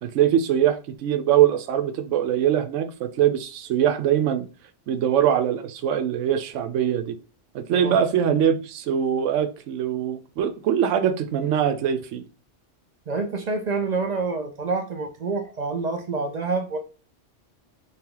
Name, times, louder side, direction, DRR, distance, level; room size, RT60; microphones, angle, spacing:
voice 1, 0.0-4.5 4.9-7.2 7.5-12.2, right 9 dB, 90° right, 0.9 m, -22 dB
voice 2, 13.1-16.8, right 4 dB, 50° right, 0.5 m, -27 dB
3.6 x 2.9 x 3.7 m
omnidirectional pair, 1.2 m